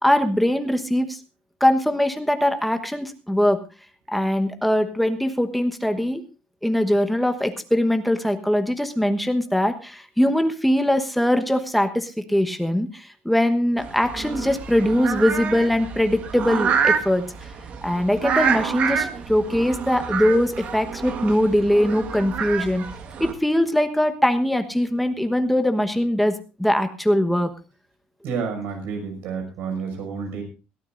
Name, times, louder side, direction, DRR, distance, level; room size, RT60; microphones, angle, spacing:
voice 1, 0.0-1.2 1.6-3.6 4.1-6.2 6.6-17.2 17.8-22.8 23.2-26.3 26.6-27.5, left 1 dB, ahead, 7 dB, 1.2 m, -21 dB
sound 1, 13.8-23.3, right 6 dB, 40° right, 1.6 m, -27 dB
voice 2, 28.2-30.4, right 5 dB, 65° right, 5 dB, 6.1 m, -30 dB
22.5 x 14.5 x 2.6 m, 0.31 s
cardioid pair, 180°, 3 cm